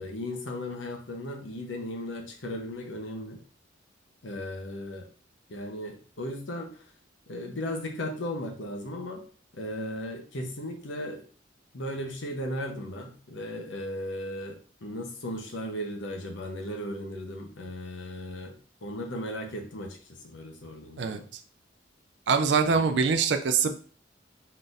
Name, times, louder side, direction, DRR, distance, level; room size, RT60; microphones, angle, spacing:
voice 1, 0.0-3.4 4.2-5.1 5.5-6.7 7.3-9.2 9.5-11.2 11.7-18.5 18.8-21.3 22.6-22.9, left 1 dB, 90° left, 3 dB, 1.0 m, -36 dB
voice 2, 22.3-23.8, right 5 dB, 65° right, 7 dB, 0.4 m, -23 dB
4.4 x 4.0 x 2.6 m, 0.41 s
head